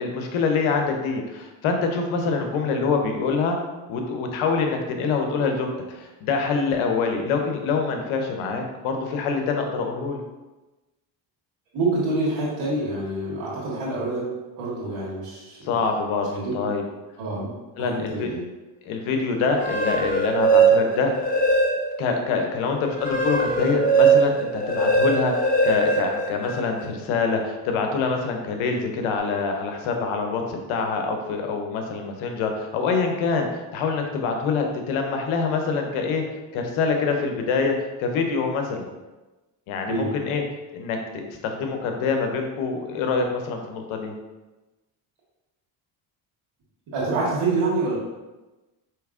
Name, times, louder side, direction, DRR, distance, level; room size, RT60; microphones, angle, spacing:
voice 1, 0.0-3.6 3.9-10.2 15.6-16.3 16.5-16.8 17.8-18.3 18.9-21.1 22.0-36.2 36.5-37.7 38.0-38.9 39.7-40.4 40.7-44.1, left 4 dB, 70° left, 4 dB, 0.8 m, -25 dB
voice 2, 11.7-15.6 16.3-16.5 17.2-17.5 17.8-18.4 39.9-40.1 46.9-47.9, right 2 dB, 70° right, -8 dB, 1.4 m, -26 dB
sound 1, 19.4-22.1 22.5-26.9, right 3 dB, 15° left, 0.7 m, -21 dB
4.5 x 3.0 x 2.4 m, 1.1 s
supercardioid pair, 75°, 50 cm